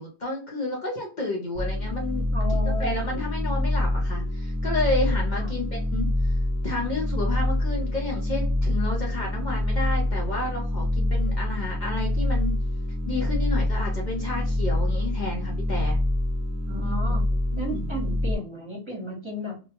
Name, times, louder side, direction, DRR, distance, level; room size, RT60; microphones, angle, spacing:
voice 1, 0.0-2.2 2.8-6.4 6.6-12.5 13.0-16.0 16.8-17.2 17.5-17.9, left 2 dB, 50° left, -1 dB, 0.7 m, -31 dB
sound 1, 1.5-18.3, left 1 dB, 10° right, 0.5 m, -26 dB
voice 2, 2.3-3.2 5.4-5.5 16.7-17.3 17.6-19.6, equal, 30° right, -3 dB, 1.0 m, -34 dB
2.8 x 2.2 x 2.8 m, 0.34 s
omnidirectional pair, 1.1 m